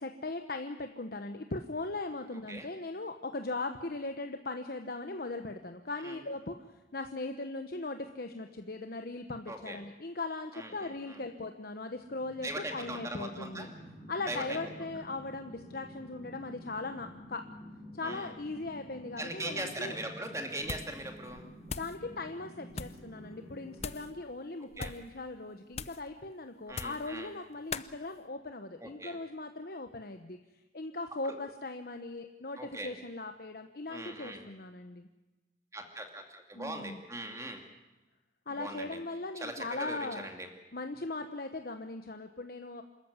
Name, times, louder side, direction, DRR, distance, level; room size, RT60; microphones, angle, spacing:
voice 1, 0.0-6.6 6.9-13.7 14.1-17.5 17.9-20.0 21.8-30.4 30.7-35.1 36.5-37.0 38.5-40.3 40.7-42.8, left 3 dB, 55° left, 6 dB, 1.0 m, -39 dB
voice 2, 9.5-9.8 10.5-11.2 12.4-13.7 14.3-14.6 18.0-18.3 19.2-21.5 24.8-24.9 26.7-27.3 28.8-29.2 31.2-31.4 32.6-32.9 33.9-34.4 35.7-37.6 38.5-39.0 39.4-40.5, right 1 dB, 15° right, 4 dB, 2.5 m, -40 dB
sound 1, 11.9-24.1, equal, 20° left, 5.5 m, -50 dB
sound 2, 20.6-21.0 21.3-22.0 22.7-23.0 23.8-24.1 24.7-25.1 25.7-26.1 26.7-27.1 27.7-27.9, left 5 dB, 35° left, 0.7 m, -40 dB
26.5 x 14.0 x 9.5 m, 1.1 s
head